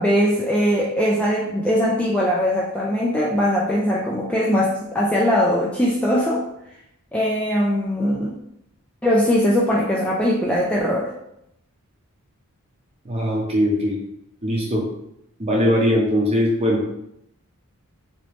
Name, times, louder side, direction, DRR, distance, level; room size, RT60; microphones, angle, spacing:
voice 1, 0.0-6.5 7.1-8.4 9.0-11.1, equal, 5° left, -5 dB, 0.3 m, -20 dB
voice 2, 13.0-14.0 14.4-14.8 15.4-16.9, equal, 25° right, -2 dB, 0.7 m, -20 dB
3.0 x 2.9 x 3.0 m, 0.79 s
head